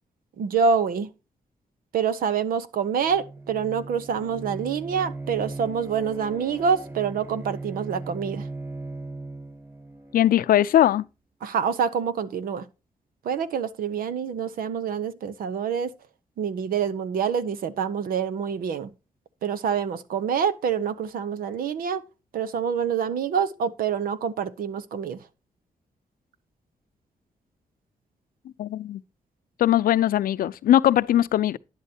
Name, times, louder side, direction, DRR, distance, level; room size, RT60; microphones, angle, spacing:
voice 1, 0.4-1.1 1.9-8.5 11.4-12.6 13.2-15.9 16.4-18.9 19.4-22.0 22.3-25.2, right 7 dB, 85° right, 1.0 m, -26 dB
Bowed string instrument, 3.0-10.8, right 3 dB, 15° right, 5.8 m, -38 dB
voice 2, 10.1-11.0 28.6-29.0 29.6-31.6, left 12 dB, 85° left, 0.5 m, -20 dB
11.0 x 10.5 x 2.9 m
cardioid pair, 60°, 15 cm